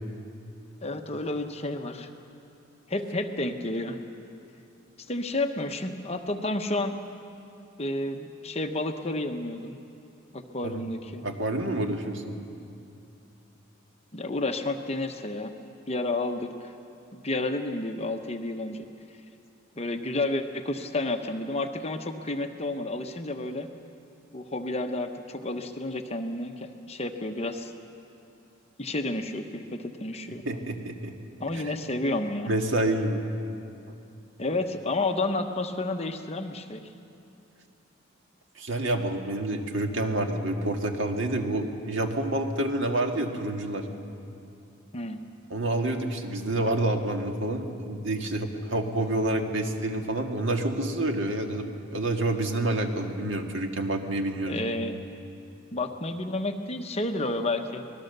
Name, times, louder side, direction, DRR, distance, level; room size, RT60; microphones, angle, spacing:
voice 1, 0.8-2.1 2.9-4.0 5.1-7.0 7.8-9.8 10.3-11.3 14.1-15.5 15.9-16.7 17.1-18.8 19.8-23.7 24.3-27.7 28.8-30.4 31.4-32.5 34.4-36.8 44.9-45.2 54.5-55.0 55.7-57.8, left 2 dB, 30° left, 6 dB, 1.0 m, -31 dB
voice 2, 11.2-12.3 30.5-31.1 31.5-31.7 32.5-33.2 38.6-43.8 45.5-54.7, right 1 dB, 65° right, 3 dB, 1.9 m, -28 dB
25.0 x 19.5 x 6.8 m, 2.6 s
head